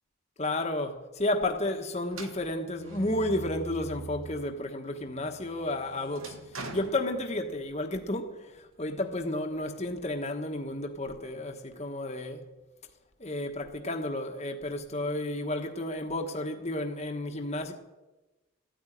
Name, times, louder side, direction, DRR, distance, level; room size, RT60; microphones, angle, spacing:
voice 1, 0.4-6.4 6.7-12.4 13.2-17.7, left 1 dB, 30° left, 1.2 m, -32 dB
sound 1, 2.1-4.5 4.9-7.8, right 3 dB, 70° right, 1.8 m, -43 dB
14.5 x 9.1 x 10.0 m
head